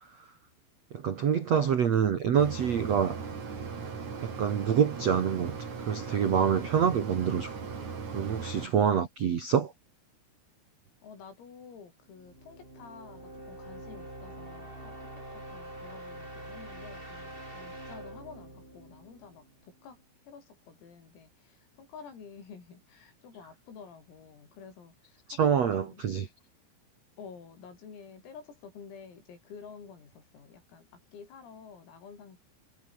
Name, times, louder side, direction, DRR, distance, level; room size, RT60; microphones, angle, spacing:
voice 1, 0.9-3.2 4.2-5.6 5.8-7.5 8.1-9.7 25.3-26.3, right 7 dB, 80° right, 1.5 m, -26 dB
Mechanisms, 2.4-8.7, right 5 dB, 35° right, 5.0 m, -38 dB
voice 2, 11.0-26.0 27.2-32.4, left 6 dB, 80° left, 9.3 m, -50 dB
sound 1, 12.1-19.9, right 1 dB, 10° right, 6.8 m, -45 dB
omnidirectional pair, 6.0 m